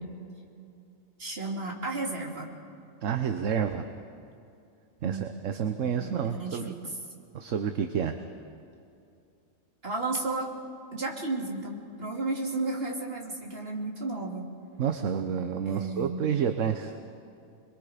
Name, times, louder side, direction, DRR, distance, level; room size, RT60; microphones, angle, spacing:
voice 1, 1.2-2.5 5.0-5.3 5.8-6.8 9.8-10.5 10.9-14.4 15.7-16.2, right 3 dB, 45° right, -1 dB, 3.0 m, -33 dB
voice 2, 3.0-3.8 5.0-6.7 7.3-8.2 14.8-17.0, right 7 dB, 70° right, 7 dB, 1.2 m, -29 dB
27.5 x 22.0 x 5.1 m, 2.6 s
omnidirectional pair, 1.4 m